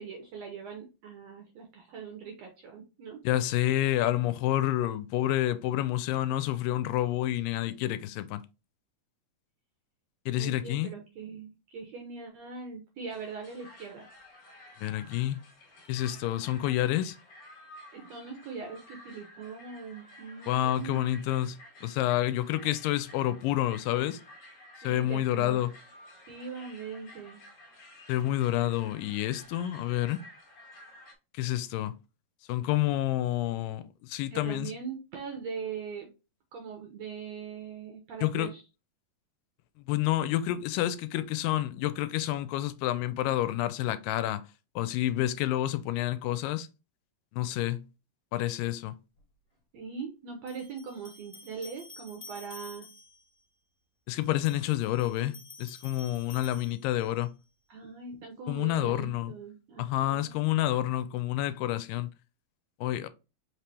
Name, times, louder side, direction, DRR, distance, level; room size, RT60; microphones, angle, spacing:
voice 1, 0.0-3.2 10.3-14.1 17.9-20.9 24.8-25.6 26.2-27.4 34.3-36.1 36.5-38.6 49.7-52.9 57.7-60.4, right 5 dB, 75° right, 1.6 m, -41 dB
voice 2, 3.2-8.4 10.3-10.9 14.8-15.4 15.9-17.2 20.5-24.2 24.8-25.7 28.1-30.2 31.3-32.0 32.5-34.7 38.2-38.5 39.8-44.4 44.8-46.7 47.3-47.8 48.3-49.0 54.1-57.3 58.5-59.3 59.8-62.1 62.8-63.1, left 14 dB, 85° left, 2.2 m, -29 dB
sound 1, 13.1-31.2, left 1 dB, 60° left, 1.6 m, -53 dB
sound 2, 49.2-49.3 50.5-53.3 54.2-57.3, left 3 dB, 20° left, 1.1 m, -51 dB
5.4 x 2.9 x 3.3 m
omnidirectional pair, 3.9 m